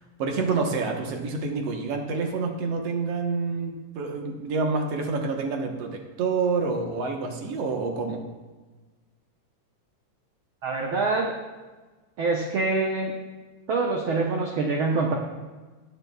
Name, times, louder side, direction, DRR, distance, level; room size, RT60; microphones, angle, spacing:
voice 1, 0.2-8.2, right 4 dB, 60° right, 2 dB, 2.0 m, -28 dB
voice 2, 10.6-11.3 12.2-13.1 13.7-15.1, right 3 dB, 85° right, 0 dB, 1.1 m, -25 dB
20.0 x 6.7 x 2.3 m, 1.3 s
omnidirectional pair, 3.5 m